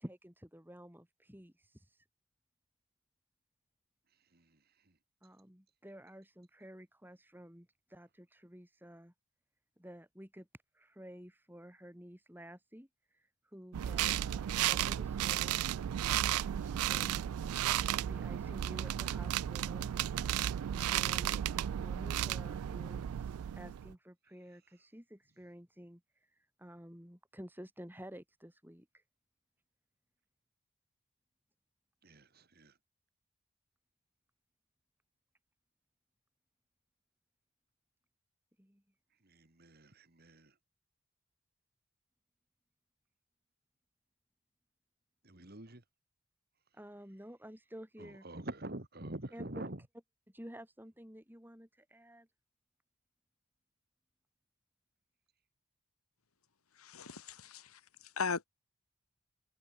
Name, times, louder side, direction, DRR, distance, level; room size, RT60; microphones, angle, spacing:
voice 1, 0.0-2.0 5.2-9.1 9.8-10.5 10.7-15.8 16.1-17.3 17.6-19.9 20.7-29.0 38.6-38.8 46.7-48.4 49.3-49.6 50.3-52.3, equal, 10° right, 3.7 m, -52 dB
sound 1, 13.7-23.9, right 11 dB, 85° right, 0.3 m, -34 dB
voice 2, 39.6-40.5 45.3-45.8 48.0-49.8, right 1 dB, 45° right, 2.2 m, -45 dB
voice 3, 56.8-57.8 58.2-58.4, left 5 dB, 85° left, 1.7 m, -37 dB
head